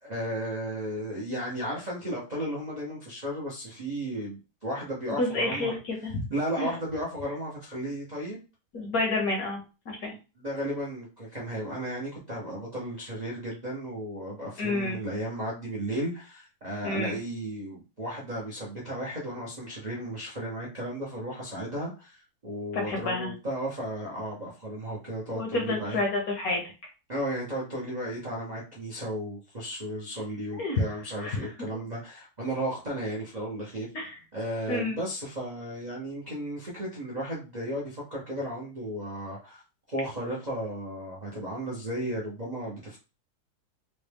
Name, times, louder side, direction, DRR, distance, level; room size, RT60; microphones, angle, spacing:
voice 1, 0.0-5.8 6.3-8.4 10.4-26.0 27.1-33.9 34.3-39.6 39.9-43.0, right 1 dB, 60° right, -4 dB, 0.4 m, -34 dB
voice 2, 5.2-6.3 6.6-6.7 8.7-9.6 9.9-10.1 14.6-15.0 16.8-17.2 22.7-23.3 25.3-26.6 30.5-30.8 31.2-31.4 33.9-34.2 34.7-35.0, left 2 dB, 60° left, 1 dB, 1.0 m, -29 dB
4.0 x 2.2 x 3.4 m, 0.31 s
omnidirectional pair, 2.3 m